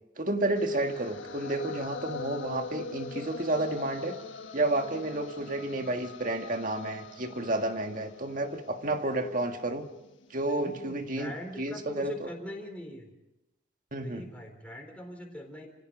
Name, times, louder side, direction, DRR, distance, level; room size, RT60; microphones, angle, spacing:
voice 1, 0.2-4.2 4.5-9.9 10.3-11.3 11.6-12.3 13.9-14.2, right 2 dB, 45° right, 5 dB, 1.8 m, -31 dB
sound 1, 0.6-10.6, left 5 dB, 85° left, 1.5 m, -43 dB
voice 2, 10.5-13.1 14.0-15.7, left 1 dB, 5° left, 1 dB, 4.1 m, -42 dB
29.0 x 17.0 x 5.3 m, 0.96 s
head